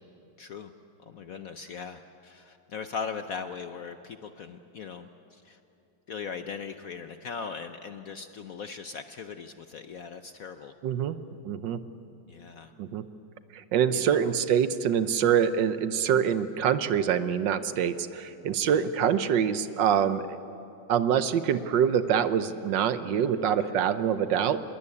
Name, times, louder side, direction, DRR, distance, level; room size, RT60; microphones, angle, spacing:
voice 1, 0.4-0.7 1.1-5.6 6.1-10.7 12.3-12.7 13.9-14.3 16.1-16.3 18.6-18.8 23.6-23.7, left 6 dB, 60° left, 8 dB, 0.9 m, -39 dB
voice 2, 10.8-11.2 11.4-11.8 12.8-13.0 13.5-20.4 20.9-24.6, right 8 dB, 70° right, 12 dB, 1.4 m, -25 dB
25.5 x 21.5 x 8.5 m, 2.8 s
omnidirectional pair, 2.1 m